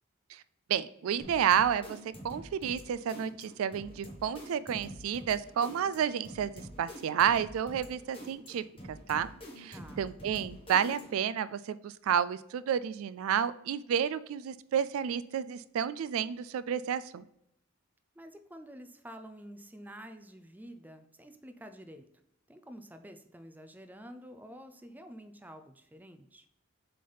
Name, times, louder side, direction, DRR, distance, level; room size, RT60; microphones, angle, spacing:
voice 1, 0.7-2.0 2.2-9.3 9.6-17.2, right 8 dB, 75° right, 16 dB, 0.3 m, -31 dB
sound 1, 1.2-11.3, equal, 25° left, 1.2 m, -47 dB
voice 2, 9.7-10.1 18.2-22.1 22.5-26.5, equal, 10° right, 8 dB, 0.4 m, -49 dB
7.6 x 3.4 x 4.0 m, 0.78 s
head